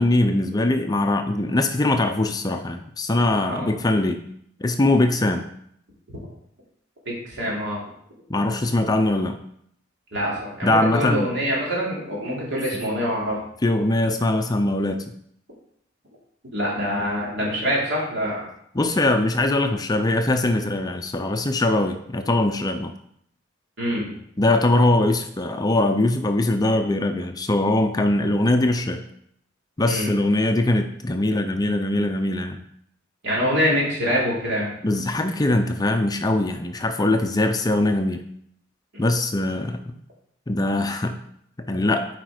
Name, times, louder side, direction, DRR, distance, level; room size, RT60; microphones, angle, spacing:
voice 1, 0.0-4.2 4.6-5.5 8.3-9.4 10.6-11.3 13.6-15.0 18.7-22.9 24.4-29.0 29.8-32.6 34.8-38.2 39.0-40.0 40.5-41.2 41.6-42.1, left 2 dB, 20° left, 6 dB, 0.5 m, -21 dB
voice 2, 7.0-7.8 10.1-13.4 16.5-18.4 23.8-24.1 29.8-30.1 33.2-34.7 38.9-39.0, equal, 60° right, -4 dB, 2.9 m, -25 dB
7.7 x 5.1 x 4.9 m, 0.70 s
head